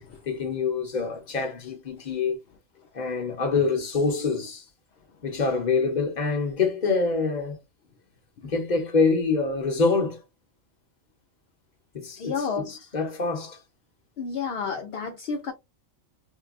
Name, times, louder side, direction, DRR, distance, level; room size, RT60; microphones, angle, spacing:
voice 1, 0.3-2.4 2.9-4.6 5.2-7.6 8.4-10.2 11.9-13.6, left 4 dB, 40° left, 1.0 m, -25 dB
voice 2, 12.2-12.7 14.2-15.5, left 5 dB, 60° left, 0.7 m, -30 dB
3.8 x 2.2 x 2.4 m
omnidirectional pair, 1.3 m